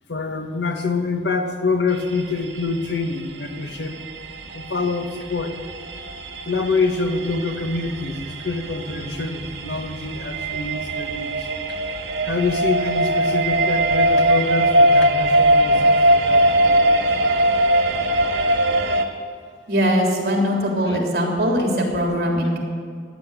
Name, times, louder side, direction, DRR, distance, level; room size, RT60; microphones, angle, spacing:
voice 1, 0.1-4.0 4.5-5.6 6.4-11.3 11.7-11.8 12.2-17.3 20.9-21.0, left 3 dB, 85° left, 5 dB, 1.5 m, -26 dB
sound 1, 1.9-19.0, right 1 dB, 90° right, 1.8 m, -21 dB
voice 2, 19.7-22.6, equal, 60° right, 0 dB, 3.5 m, -21 dB
15.0 x 10.5 x 8.2 m, 2.1 s
head